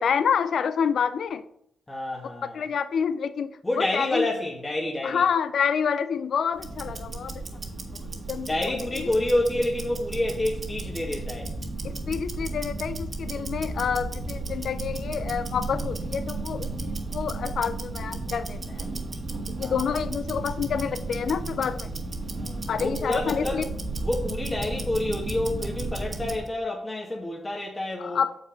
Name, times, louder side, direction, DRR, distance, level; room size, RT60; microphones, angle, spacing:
voice 1, 0.0-1.4 2.5-3.5 3.8-4.2 5.0-7.4 8.3-8.5 11.8-16.7 17.1-18.9 19.6-21.9 22.7-23.6 28.0-28.3, left 7 dB, 70° left, 0.4 m, -27 dB
voice 2, 1.9-2.7 3.6-5.2 8.5-11.5 19.6-20.0 22.4-23.7 24.0-28.2, left 1 dB, 25° left, 1.9 m, -28 dB
Tick-tock, 6.5-26.5, right 2 dB, 50° right, 1.6 m, -33 dB
6.7 x 5.5 x 5.1 m
hypercardioid pair, 40°, 0 cm